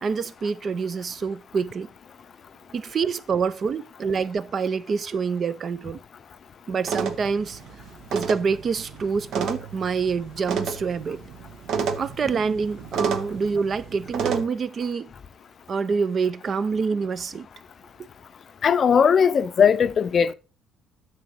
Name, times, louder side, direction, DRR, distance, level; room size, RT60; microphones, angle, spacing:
voice 1, 0.0-1.9 2.7-6.0 6.7-7.6 8.1-11.2 12.0-15.1 15.7-17.5, right 5 dB, 45° right, 0.4 m, -26 dB
sound 1, 6.8-14.4, right 6 dB, 65° right, 0.9 m, -31 dB
voice 2, 18.6-20.3, left 7 dB, 45° left, 0.5 m, -18 dB
9.2 x 6.6 x 3.0 m
supercardioid pair, 75°, 0 cm